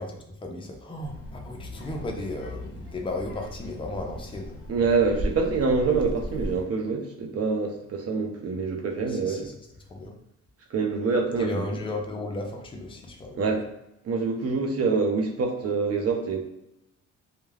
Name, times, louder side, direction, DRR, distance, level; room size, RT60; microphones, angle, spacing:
voice 1, 0.0-4.6 9.1-9.5 9.9-10.2 11.4-13.6, left 2 dB, 15° left, 1 dB, 0.5 m, -35 dB
Child speech kid speaking, 1.0-6.6, equal, 45° left, 1.0 m, -37 dB
voice 2, 4.7-9.5 10.7-11.7 13.3-13.6 14.0-16.4, right 4 dB, 50° right, 3 dB, 0.6 m, -25 dB
2.3 x 2.2 x 3.2 m, 0.87 s
cardioid pair, 100°, 31 cm